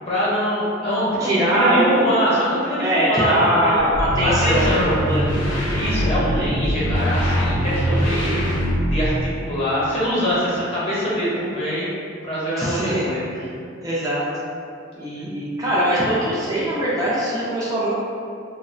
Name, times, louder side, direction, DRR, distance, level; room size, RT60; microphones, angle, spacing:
voice 1, 0.0-1.1 1.3-3.9 4.2-5.0 5.6-8.5 8.9-9.1 9.4-11.9 12.2-13.2 15.2-15.3, equal, 30° left, -8 dB, 0.8 m, -23 dB
voice 2, 1.2-2.1 2.8-5.3 6.2-6.5 12.6-13.1 13.8-14.2 15.0-18.0, right 1 dB, 20° right, -8 dB, 0.3 m, -21 dB
sound 1, 3.9-9.3, equal, 85° left, 0.6 m, -22 dB
3.0 x 2.1 x 2.4 m, 2.4 s
head